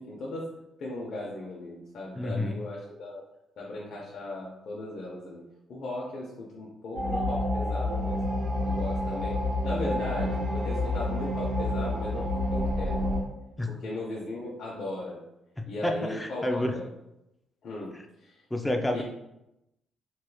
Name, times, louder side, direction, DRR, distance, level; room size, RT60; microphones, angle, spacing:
voice 1, 0.0-3.2 3.6-5.4 5.7-8.2 8.6-13.1 13.7-15.2 15.7-16.9 17.6-17.9 18.2-18.4 18.9-19.0, left 2 dB, 60° left, -4 dB, 0.6 m, -37 dB
voice 2, 2.1-2.6 13.6-13.7 15.6-16.7 18.5-19.0, left 1 dB, 10° left, 4 dB, 0.4 m, -29 dB
sound 1, 6.9-13.2, left 1 dB, 70° right, 1.2 m, -28 dB
3.0 x 3.0 x 2.3 m, 0.87 s
cardioid pair, 90°, 0 cm